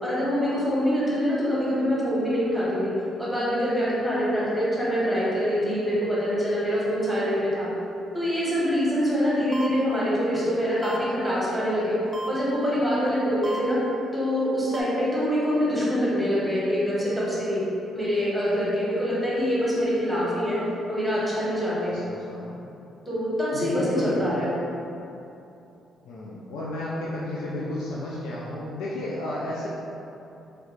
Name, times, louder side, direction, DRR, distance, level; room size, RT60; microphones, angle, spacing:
voice 1, 0.0-2.9 3.2-7.7 8.1-12.0 12.3-13.8 14.1-17.6 17.9-20.6 20.9-22.1 23.1-24.5, equal, ahead, -9 dB, 1.2 m, -25 dB
sound 1, 9.5-9.7 10.8-11.0 12.1-12.3 13.4-13.6 14.7-14.8, right 1 dB, 35° right, 0.3 m, -33 dB
voice 2, 21.8-22.6 23.5-24.4 26.1-29.7, left 1 dB, 90° left, -6 dB, 0.3 m, -32 dB
3.2 x 2.4 x 3.0 m, 2.8 s
cardioid pair, 90°, 0 cm